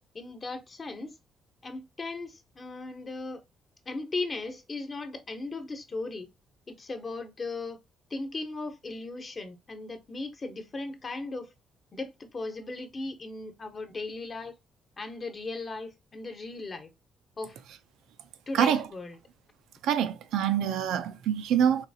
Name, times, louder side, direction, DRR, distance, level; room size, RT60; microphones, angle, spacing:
voice 1, 0.1-1.2 1.6-3.4 3.9-6.3 6.7-7.8 8.1-11.5 11.9-14.5 15.0-16.9 17.4-17.6 18.5-19.2, left 3 dB, 35° left, 1.0 m, -37 dB
voice 2, 18.5-18.9 19.8-21.9, right 9 dB, 85° right, 0.5 m, -25 dB
4.1 x 3.2 x 2.7 m
cardioid pair, 90°, 0 cm